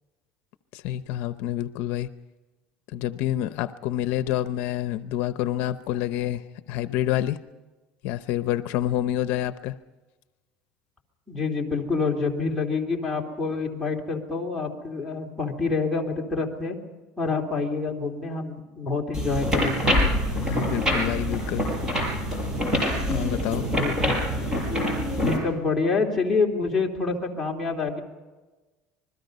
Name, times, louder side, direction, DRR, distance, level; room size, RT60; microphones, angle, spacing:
voice 1, 0.7-2.1 2.9-6.4 6.7-7.4 8.0-9.7 20.4-21.6 23.1-23.6, left 12 dB, 65° left, 12 dB, 0.7 m, -28 dB
voice 2, 11.3-16.8 17.2-19.9 23.7-24.1 25.2-28.0, left 4 dB, 5° left, -3 dB, 3.1 m, -27 dB
sound 1, 19.1-25.4, equal, 20° right, 6.2 m, -25 dB
26.5 x 21.0 x 5.4 m, 1.2 s
cardioid pair, 155°, 3 cm